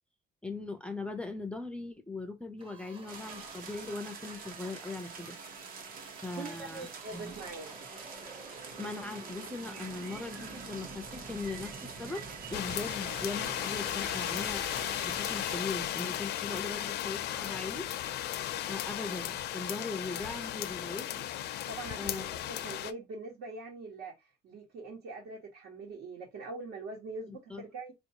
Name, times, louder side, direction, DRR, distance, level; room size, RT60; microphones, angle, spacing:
voice 1, 0.4-5.4 6.2-6.9 7.1-7.3 8.8-12.2 12.5-14.6 15.0-17.9 18.6-21.3 21.9-22.2 27.3-27.6, left 3 dB, 5° left, 0.4 m, -39 dB
sound 1, 2.6-19.2, right 2 dB, 30° right, 1.1 m, -51 dB
sound 2, 3.1-15.6, right 5 dB, 50° right, 0.9 m, -46 dB
voice 2, 6.4-7.7 21.7-27.9, right 3 dB, 70° right, 1.3 m, -43 dB
sound 3, 12.5-22.9, left 12 dB, 65° left, 0.5 m, -35 dB
4.5 x 2.6 x 2.8 m
cardioid pair, 155°, 18 cm